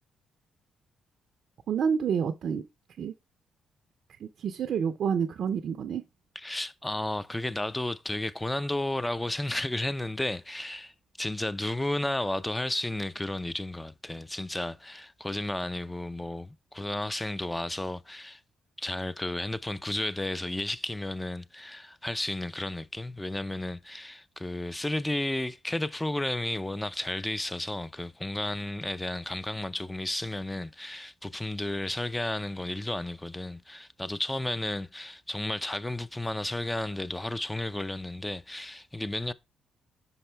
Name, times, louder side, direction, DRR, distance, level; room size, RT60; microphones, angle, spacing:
voice 1, 1.7-2.6 3.0-3.1 4.2-6.0, right 7 dB, 65° right, 0.5 m, -28 dB
voice 2, 6.4-10.9 11.2-18.4 18.8-39.3, left 1 dB, 10° left, 0.5 m, -33 dB
5.6 x 5.2 x 3.3 m
supercardioid pair, 60°, 0 cm